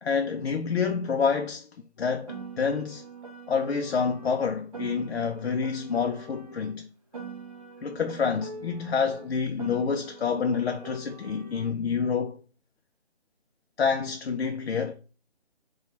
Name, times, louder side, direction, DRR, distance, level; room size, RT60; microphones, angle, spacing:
voice 1, 0.0-1.7 2.0-3.0 3.5-6.9 7.8-12.4 13.8-14.9, left 6 dB, 65° left, 0.5 m, -28 dB
Piano, 2.3-6.7 7.1-11.7, right 4 dB, 35° right, 0.6 m, -43 dB
4.2 x 2.3 x 4.0 m
figure-of-eight pair, 155°, 33 cm